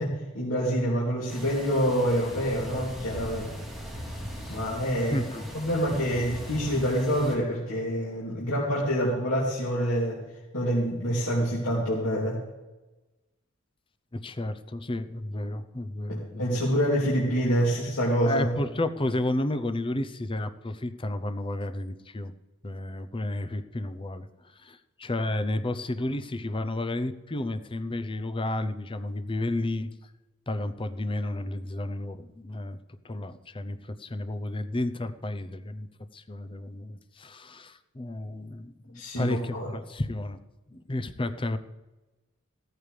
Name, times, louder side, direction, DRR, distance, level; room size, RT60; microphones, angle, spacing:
voice 1, 0.0-3.5 4.5-5.2 5.5-10.2 10.5-12.4 16.1-18.5 38.9-39.7, equal, 80° left, -5 dB, 2.8 m, -26 dB
sound 1, 1.3-7.3, equal, ahead, 3.5 m, -39 dB
voice 2, 5.1-5.4 14.1-16.6 18.2-22.3 22.6-24.3 24.6-29.9 30.5-32.8 33.0-35.9 36.1-40.4 40.7-41.6, left 1 dB, 25° left, 11 dB, 0.7 m, -32 dB
16.0 x 14.0 x 3.3 m, 1.1 s
head